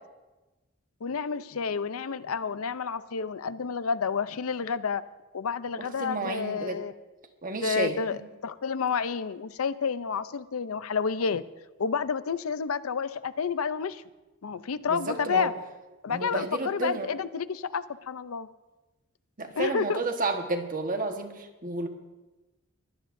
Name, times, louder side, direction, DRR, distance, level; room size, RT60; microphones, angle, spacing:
voice 1, 1.0-5.0 5.3-6.9 7.6-11.4 11.8-14.0 14.4-15.5 16.0-18.5 19.5-20.0, left 6 dB, 80° left, 14 dB, 0.6 m, -30 dB
voice 2, 5.8-6.8 7.4-8.2 14.9-15.5 16.1-17.2 19.4-21.9, right 2 dB, 40° right, 5 dB, 1.4 m, -31 dB
22.5 x 16.5 x 2.6 m, 1.1 s
head